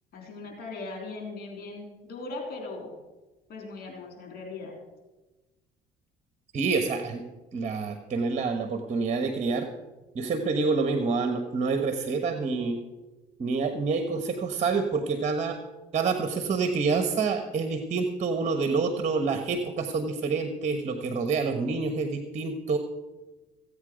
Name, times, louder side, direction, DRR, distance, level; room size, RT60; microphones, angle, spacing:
voice 1, 0.1-3.0 3.5-4.8, left 3 dB, 60° left, 2 dB, 3.5 m, -39 dB
voice 2, 6.5-7.2 7.5-9.7 10.1-12.8 13.4-15.6 15.9-22.8, right 4 dB, 40° right, 7 dB, 1.3 m, -27 dB
15.0 x 8.7 x 5.1 m, 1.1 s
supercardioid pair, 75°, 18 cm